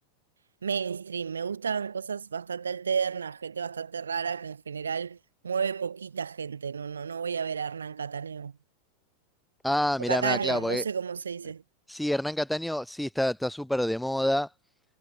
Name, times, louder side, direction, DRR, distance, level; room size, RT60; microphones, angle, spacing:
voice 1, 0.6-5.2 5.4-8.5 10.0-11.6, right 6 dB, 70° right, 4.3 m, -32 dB
voice 2, 9.6-10.8 11.9-14.5, left 1 dB, ahead, 2.5 m, -27 dB
figure-of-eight pair, 90°, 0 cm